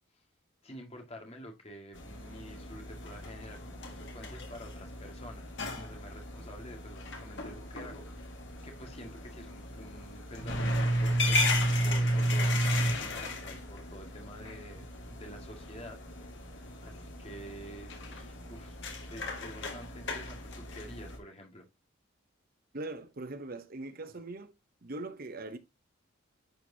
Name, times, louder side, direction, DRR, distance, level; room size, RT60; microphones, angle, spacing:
voice 1, 0.6-16.0 16.8-21.7, equal, 30° left, 1.9 m, -49 dB
sound 1, 1.9-21.2, equal, 60° left, 2.0 m, -34 dB
voice 2, 22.7-24.5 24.8-25.6, right 2 dB, 45° right, 0.8 m, -41 dB
10.5 x 4.5 x 2.8 m
head